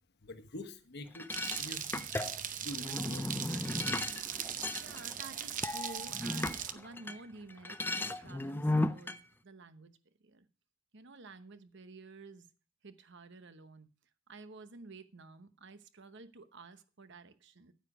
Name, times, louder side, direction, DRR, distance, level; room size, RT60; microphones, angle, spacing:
voice 1, 0.2-2.1 2.6-3.7, left 1 dB, 55° left, 9 dB, 1.2 m, -46 dB
sound 1, 1.1-7.2 7.5-9.2, left 2 dB, 10° left, 0.5 m, -36 dB
sound 2, 1.3-6.7, right 9 dB, 40° right, 0.7 m, -39 dB
voice 2, 4.8-10.5 10.9-12.5 12.8-13.9 14.3-17.7, right 3 dB, 60° right, 11 dB, 1.0 m, -51 dB
9.6 x 9.2 x 4.9 m, 0.35 s
head